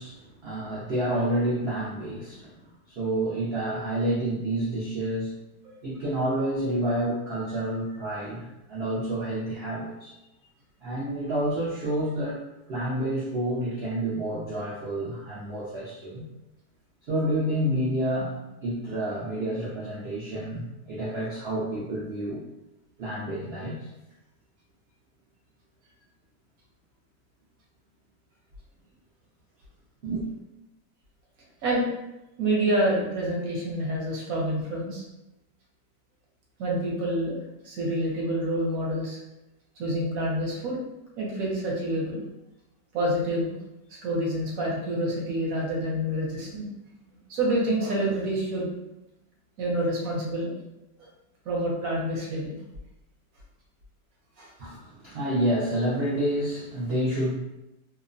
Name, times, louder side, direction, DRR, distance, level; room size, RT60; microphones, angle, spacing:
voice 1, 0.0-2.5 2.9-5.3 5.8-10.1 10.8-12.4 12.7-16.3 17.1-18.4 18.6-22.4 23.0-23.9 30.0-30.2 54.6-57.3, right 1 dB, 80° right, -7 dB, 0.5 m, -29 dB
voice 2, 32.4-35.0 36.6-37.4 37.6-39.2 39.8-40.8 41.2-42.2 42.9-43.6 44.0-46.7 47.3-48.7 49.6-50.5 51.5-52.6 54.4-54.5, right 1 dB, 65° right, -4 dB, 1.0 m, -27 dB
2.8 x 2.1 x 2.5 m, 0.94 s
omnidirectional pair, 1.8 m